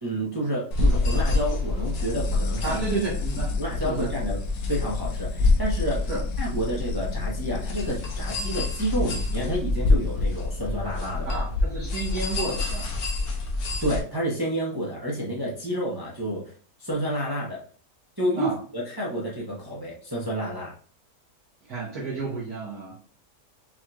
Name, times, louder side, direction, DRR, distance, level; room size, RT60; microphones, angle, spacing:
voice 1, 0.0-2.8 3.6-4.4 4.7-6.1 6.4-11.4 13.8-16.4 16.8-17.6 18.2-20.7, equal, 20° right, -5 dB, 0.6 m, -29 dB
sound 1, 0.7-14.0, left 2 dB, 85° left, 1.5 m, -27 dB
sound 2, 2.0-10.6, left 5 dB, 70° left, 0.9 m, -38 dB
voice 2, 2.6-3.5 3.8-4.1 6.1-6.2 11.2-12.9 18.4-18.6 21.7-23.0, right 3 dB, 60° right, -7 dB, 1.6 m, -31 dB
5.8 x 3.0 x 2.4 m, 0.43 s
omnidirectional pair, 1.8 m